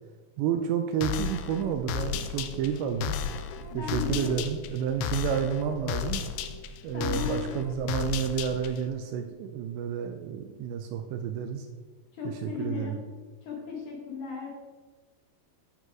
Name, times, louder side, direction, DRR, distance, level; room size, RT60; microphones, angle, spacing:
voice 1, 0.4-3.2 3.7-6.2 6.8-11.7 12.2-13.0, right 8 dB, 80° right, 5 dB, 2.7 m, -30 dB
sound 1, 1.0-8.9, left 8 dB, 85° left, 2.4 m, -34 dB
voice 2, 3.7-4.4 6.9-7.4 12.1-13.0 13.5-14.5, left 6 dB, 65° left, -1 dB, 2.0 m, -35 dB
11.0 x 6.0 x 4.7 m, 1.3 s
omnidirectional pair, 5.5 m